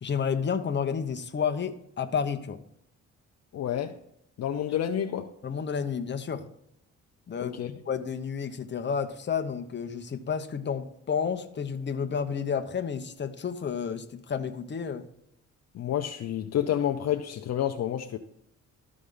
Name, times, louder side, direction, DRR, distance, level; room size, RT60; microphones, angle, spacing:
voice 1, 0.0-2.6 5.4-6.4 7.3-15.0, left 6 dB, 35° left, 6 dB, 1.0 m, -31 dB
voice 2, 3.5-3.9 4.4-5.3 7.4-7.7 15.7-18.2, left 10 dB, 60° left, 5 dB, 0.7 m, -29 dB
13.5 x 5.0 x 3.9 m, 0.75 s
cardioid pair, 90°, 30 cm